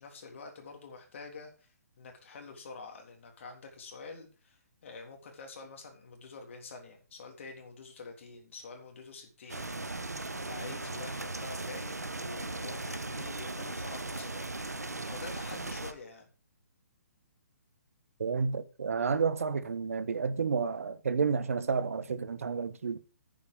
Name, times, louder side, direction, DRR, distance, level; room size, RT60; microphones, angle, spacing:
voice 1, 0.0-16.3, left 4 dB, 50° left, 3.5 m, -47 dB
sound 1, 9.5-15.9, right 2 dB, 85° right, 1.2 m, -38 dB
voice 2, 18.2-23.0, right 5 dB, 60° right, 1.2 m, -30 dB
10.0 x 9.3 x 5.1 m
figure-of-eight pair, 135°, 9 cm